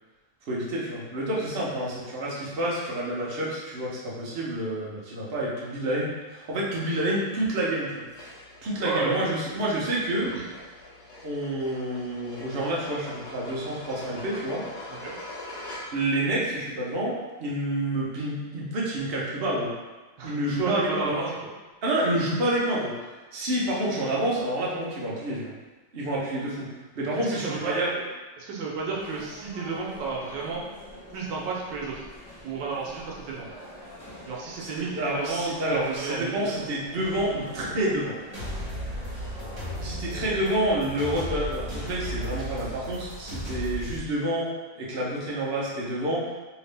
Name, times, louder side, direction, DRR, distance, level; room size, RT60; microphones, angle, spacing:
voice 1, 0.5-8.0 8.6-10.3 11.2-14.6 15.9-19.7 20.2-21.3 21.8-22.9 23.3-25.5 25.9-27.9 34.6-38.2 39.8-46.3, right 1 dB, 55° right, -5 dB, 0.6 m, -28 dB
sound 1, 8.1-16.2, left 2 dB, 65° left, 1.4 m, -43 dB
voice 2, 8.8-9.2 10.3-10.5 14.9-15.2 20.2-21.2 27.1-27.8 28.4-30.6 31.1-32.1 32.4-33.5 34.3-36.6, right 4 dB, 75° right, -3 dB, 1.3 m, -32 dB
sound 2, 28.7-42.3, equal, 5° left, 0.5 m, -45 dB
sound 3, 38.3-44.0, equal, 25° right, 1.1 m, -35 dB
3.4 x 2.8 x 3.3 m, 1.2 s
omnidirectional pair, 2.0 m